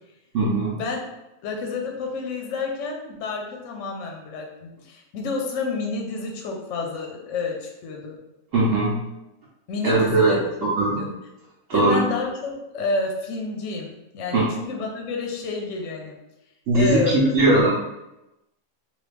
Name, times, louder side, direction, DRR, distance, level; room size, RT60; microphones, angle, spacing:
voice 1, 0.3-0.8 8.5-9.0 9.8-10.4 10.8-11.0 11.7-12.0 14.3-14.4 16.7-17.7, right 2 dB, 65° right, -6 dB, 1.0 m, -19 dB
voice 2, 1.4-8.2 9.7-11.1 11.7-16.2 16.7-17.2, left 4 dB, 65° left, 1 dB, 0.9 m, -29 dB
3.1 x 2.4 x 3.3 m, 0.93 s
omnidirectional pair, 1.5 m